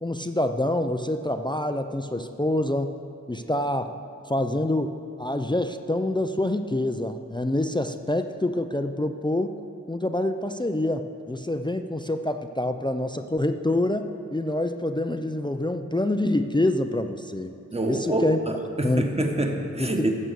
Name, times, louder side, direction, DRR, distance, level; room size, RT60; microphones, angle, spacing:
voice 1, 0.0-2.9 3.3-3.9 4.3-9.5 9.9-17.6 17.8-18.4 18.8-19.1 19.8-20.1, left 1 dB, 15° left, 7 dB, 0.5 m, -26 dB
voice 2, 17.7-20.1, right 1 dB, 20° right, 3 dB, 1.3 m, -26 dB
15.0 x 6.2 x 6.9 m, 2.6 s
wide cardioid pair, 60°, 31 cm